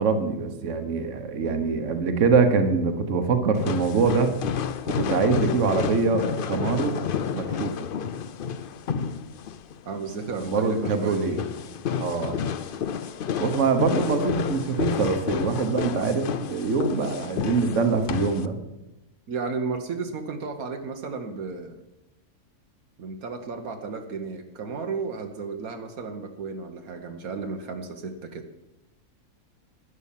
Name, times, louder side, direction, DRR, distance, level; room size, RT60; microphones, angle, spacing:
voice 1, 0.0-4.3 4.9-6.9 7.3-7.7 10.4-11.4 12.0-12.4 13.4-18.6, right 4 dB, 55° right, 7 dB, 1.5 m, -24 dB
sound 1, 3.6-18.5, left 7 dB, 60° left, 0.5 m, -30 dB
voice 2, 9.8-11.2 19.3-21.8 23.0-28.5, right 4 dB, 75° right, 5 dB, 1.5 m, -33 dB
11.5 x 10.0 x 7.3 m, 0.95 s
omnidirectional pair, 1.5 m